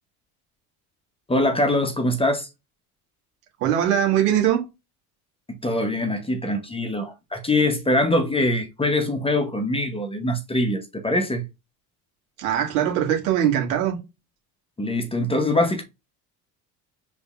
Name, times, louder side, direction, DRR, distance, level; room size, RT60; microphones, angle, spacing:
voice 1, 1.3-2.5 5.5-11.5 14.8-15.8, left 1 dB, 15° left, 0.8 m, -23 dB
voice 2, 3.6-4.6 12.4-14.0, right 10 dB, 80° right, 1.6 m, -21 dB
5.2 x 3.2 x 2.4 m
hypercardioid pair, 80°, 44 cm